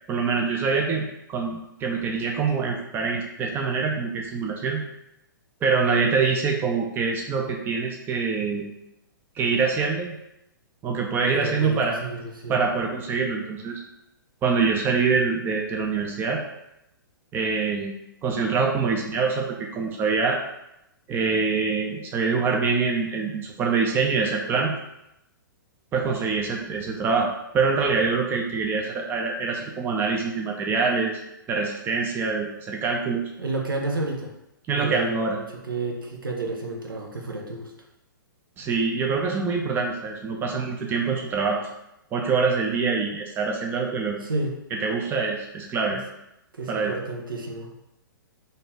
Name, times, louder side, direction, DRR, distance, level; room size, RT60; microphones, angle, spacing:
voice 1, 0.1-4.8 5.6-8.6 9.4-10.2 10.8-11.9 12.5-13.8 14.4-16.4 17.3-17.9 18.2-20.4 21.1-24.7 25.9-27.3 27.5-31.2 31.5-33.3 34.7-35.4 38.6-41.7 42.1-44.2 44.7-46.0 46.7-46.9, right 4 dB, 20° right, 0 dB, 0.5 m, -25 dB
voice 2, 11.3-12.6 33.4-34.3 34.7-37.7 44.2-44.5 45.9-46.0 46.5-47.7, right 2 dB, 75° right, 0 dB, 0.8 m, -31 dB
4.0 x 2.6 x 3.5 m, 0.85 s
figure-of-eight pair, 115°, 11 cm